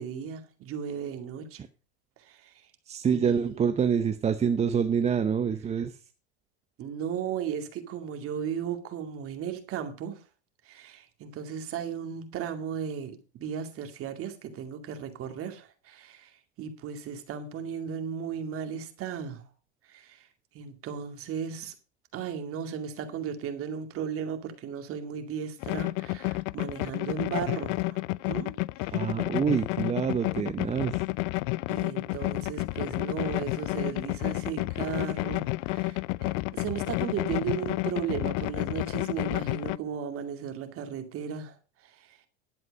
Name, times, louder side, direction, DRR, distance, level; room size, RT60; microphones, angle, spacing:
voice 1, 0.0-1.6 2.2-2.5 3.1-3.7 6.8-10.2 10.7-16.3 16.6-19.4 19.9-20.3 20.5-21.7 22.1-28.0 28.3-28.5 28.8-29.0 31.7-41.6 42.0-42.2, right 8 dB, 40° right, 2.3 m, -36 dB
voice 2, 2.9-5.9 28.9-31.0, right 7 dB, 20° right, 0.7 m, -26 dB
sound 1, 25.6-39.8, left 23 dB, 50° left, 0.4 m, -30 dB
11.5 x 7.6 x 5.2 m
hypercardioid pair, 110°, 33 cm